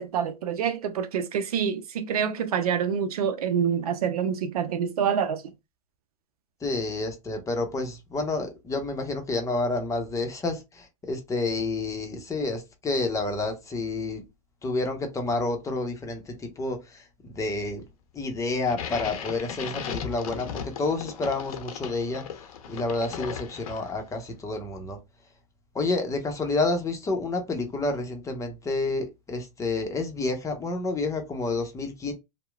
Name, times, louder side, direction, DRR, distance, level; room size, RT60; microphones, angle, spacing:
voice 1, 0.0-5.4, right 7 dB, 85° right, 0.5 m, -27 dB
voice 2, 6.6-14.2 14.6-17.8 18.1-22.2 22.7-25.0 25.7-32.1, left 3 dB, 15° left, 0.7 m, -29 dB
sound 1, 18.7-24.2, left 8 dB, 75° left, 0.6 m, -37 dB
2.8 x 2.1 x 2.3 m
hypercardioid pair, 115°, 19 cm